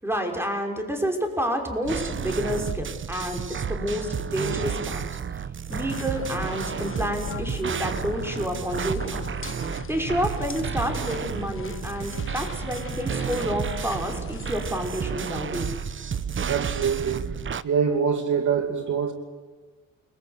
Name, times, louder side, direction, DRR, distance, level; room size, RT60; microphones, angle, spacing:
voice 1, 0.0-3.4 3.7-5.0 5.7-9.2 9.9-15.7, equal, 5° right, 3 dB, 5.9 m, -29 dB
sound 1, 1.8-17.6, right 7 dB, 35° right, 1.0 m, -31 dB
sound 2, 5.7-15.6, left 6 dB, 35° left, 1.6 m, -40 dB
voice 2, 16.5-17.3 17.6-19.1, right 6 dB, 55° right, 6 dB, 2.7 m, -24 dB
29.5 x 21.5 x 8.3 m, 1.3 s
cardioid pair, 105°, 36 cm